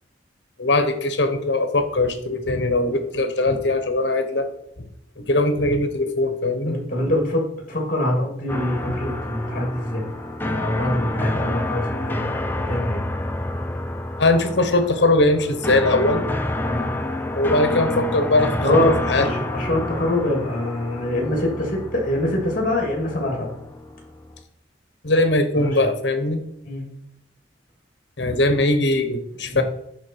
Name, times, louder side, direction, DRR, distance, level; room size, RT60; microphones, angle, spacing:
voice 1, 0.6-4.5 5.2-6.8 14.2-16.2 17.3-18.8 19.1-19.3 25.0-26.4 28.2-29.6, left 2 dB, 70° left, 8 dB, 1.1 m, -20 dB
voice 2, 6.6-10.0 10.4-12.3 12.6-13.0 16.7-16.9 18.6-23.5 25.5-25.8 26.6-26.9 29.5-29.6, left 1 dB, 50° left, 0 dB, 2.7 m, -24 dB
sound 1, 8.5-24.4, left 1 dB, 10° left, 0.6 m, -28 dB
10.5 x 3.8 x 4.6 m, 0.76 s
head